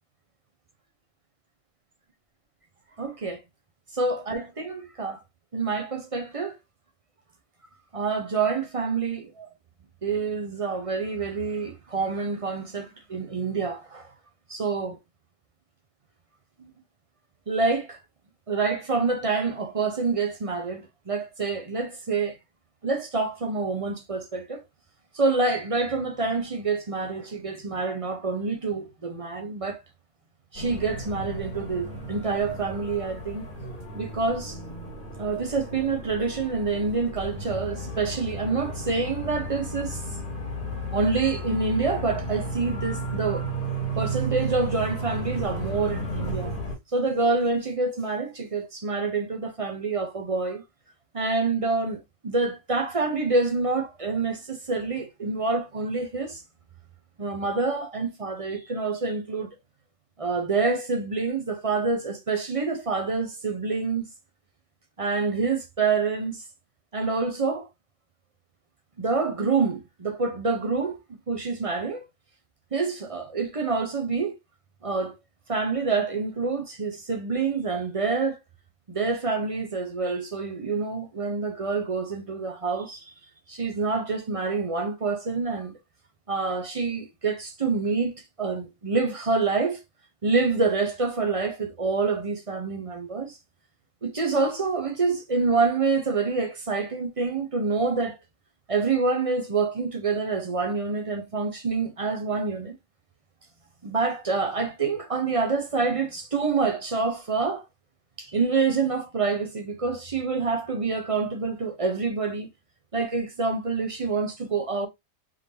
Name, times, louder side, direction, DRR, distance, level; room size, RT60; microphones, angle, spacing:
voice 1, 3.0-3.4 3.9-5.2 5.5-6.6 7.9-9.5 10.0-14.1 14.5-15.0 16.6-16.7 17.5-18.0 18.5-22.4 22.8-24.6 25.1-29.8 30.5-33.4 33.9-34.6 35.2-40.0 40.9-43.5 44.0-46.5 46.9-50.6 51.1-56.4 57.2-59.5 60.2-64.1 65.0-66.4 66.9-67.7 69.0-72.1 72.7-74.4 74.8-75.1 75.5-78.4 78.9-83.0 83.5-85.8 86.3-89.8 90.2-93.4 94.0-98.2 98.7-102.8 103.8-107.6 108.2-112.5 112.9-114.9, right 4 dB, 35° right, 0.5 m, -27 dB
sound 1, 30.5-46.8, right 1 dB, 40° left, 1.4 m, -33 dB
3.7 x 3.3 x 2.7 m
omnidirectional pair, 1.4 m